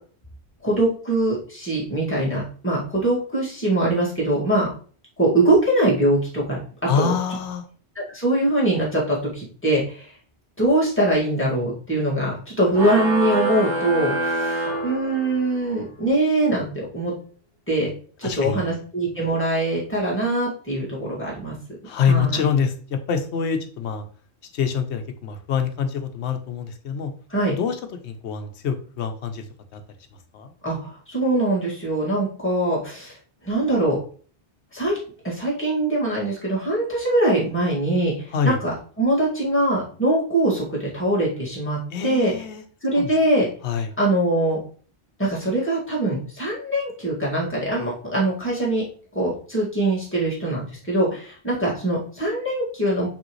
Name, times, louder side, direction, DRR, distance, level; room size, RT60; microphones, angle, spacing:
voice 1, 0.6-4.7 5.2-6.6 7.0-7.1 8.1-10.1 10.6-17.1 17.7-17.9 18.2-21.6 22.1-22.5 27.3-27.5 30.6-33.1 33.4-34.0 34.7-35.0 35.2-42.3 42.8-43.5 44.0-44.6 45.2-48.8 49.1-53.1, right 1 dB, 10° left, -6 dB, 2.0 m, -22 dB
voice 2, 6.9-7.7 18.2-18.8 21.8-24.0 24.5-27.1 27.5-29.5 29.7-29.8 30.3-30.5 38.3-38.6 41.9-42.6 42.9-43.1 43.6-43.9, left 6 dB, 80° left, 7 dB, 1.0 m, -25 dB
sound 1, 12.7-15.6, right 2 dB, 85° right, 1.3 m, -26 dB
5.2 x 3.4 x 3.0 m, 0.42 s
omnidirectional pair, 1.1 m